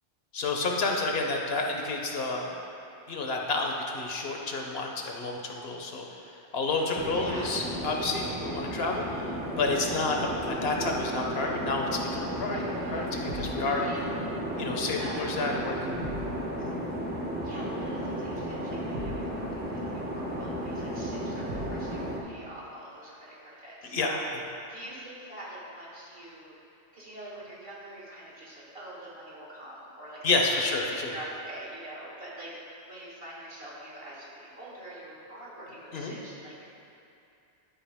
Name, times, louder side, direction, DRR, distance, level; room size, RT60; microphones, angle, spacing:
voice 1, 0.3-2.5 3.1-12.6 12.9-13.8 14.6-16.0 16.6-16.8 23.8-24.1 30.2-31.1 35.9-36.1, left 3 dB, 65° left, 1 dB, 1.0 m, -30 dB
sound 1, 6.9-22.2, equal, 10° right, 0.7 m, -34 dB
voice 2, 7.1-7.6 12.4-13.2 13.7-14.1 15.0-15.3 17.4-24.3 24.7-26.5 26.9-30.8 31.0-32.6 32.9-36.6, right 1 dB, 55° right, -6 dB, 1.9 m, -44 dB
sound 2, 13.3-13.6 16.0-16.4 18.9-19.3 21.5-21.9, right 1 dB, 75° right, 1.2 m, -38 dB
11.0 x 4.7 x 3.5 m, 2.6 s
omnidirectional pair, 1.1 m